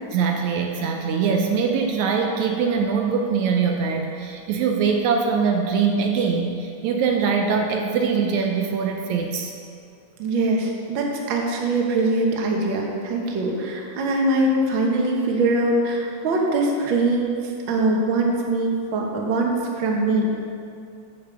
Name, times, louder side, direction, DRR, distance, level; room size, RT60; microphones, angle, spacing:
voice 1, 0.1-9.5, right 5 dB, 80° right, 2 dB, 2.0 m, -22 dB
voice 2, 10.2-20.3, right 2 dB, 55° right, 0 dB, 1.6 m, -22 dB
8.6 x 6.8 x 7.0 m, 2.5 s
omnidirectional pair, 3.5 m